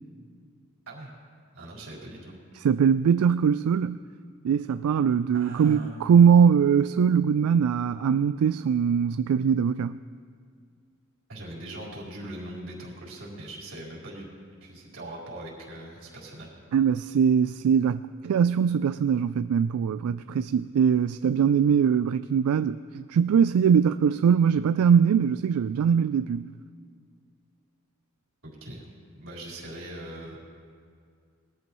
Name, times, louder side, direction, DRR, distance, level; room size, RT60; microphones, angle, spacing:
voice 1, 0.9-1.2 1.5-2.3 5.3-6.1 11.3-14.2 14.6-16.5 28.4-28.8 29.2-30.4, right 1 dB, 65° right, -5 dB, 4.3 m, -40 dB
voice 2, 2.6-4.0 4.4-10.0 16.7-26.5, right 7 dB, 85° right, 12 dB, 0.3 m, -22 dB
21.0 x 13.5 x 3.1 m, 2.2 s
head